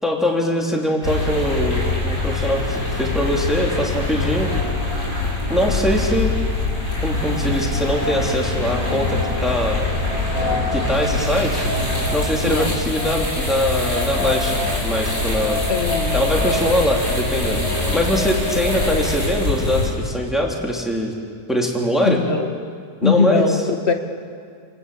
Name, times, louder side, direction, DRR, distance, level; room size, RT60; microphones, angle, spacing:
voice 1, 0.0-4.5 5.5-6.3 7.0-9.9 10.7-11.6 12.1-14.5 14.8-15.6 16.1-17.6 17.9-21.1 21.5-22.2 23.0-23.5, equal, ahead, -1 dB, 3.2 m, -22 dB
sound 1, 1.0-19.9, left 2 dB, 80° left, 6.9 m, -23 dB
voice 2, 12.4-12.8 15.7-16.2 22.0-22.5 23.0-23.9, left 5 dB, 40° left, 5 dB, 1.9 m, -20 dB
29.0 x 20.0 x 8.5 m, 2.2 s
omnidirectional pair, 1.7 m